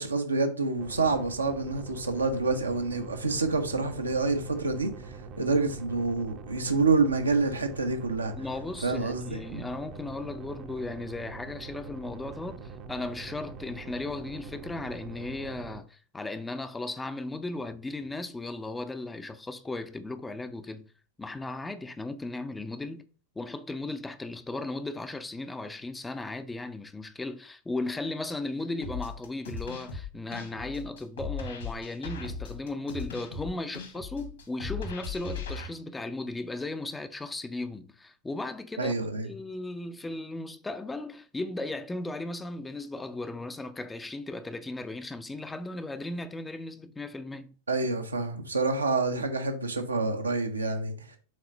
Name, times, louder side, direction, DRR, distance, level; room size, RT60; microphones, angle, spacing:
voice 1, 0.0-4.9 5.4-8.3 8.8-9.7 38.8-39.3 47.7-50.9, right 3 dB, 80° right, 1.0 m, -27 dB
sound 1, 0.8-15.8, right 4 dB, 35° right, 0.8 m, -44 dB
voice 2, 8.4-20.9 21.2-23.1 23.4-38.9 39.2-47.5, left 2 dB, 10° left, 0.6 m, -36 dB
sound 2, 28.8-35.7, left 4 dB, 65° left, 1.9 m, -38 dB
6.5 x 4.1 x 5.4 m
figure-of-eight pair, 90°, 0 cm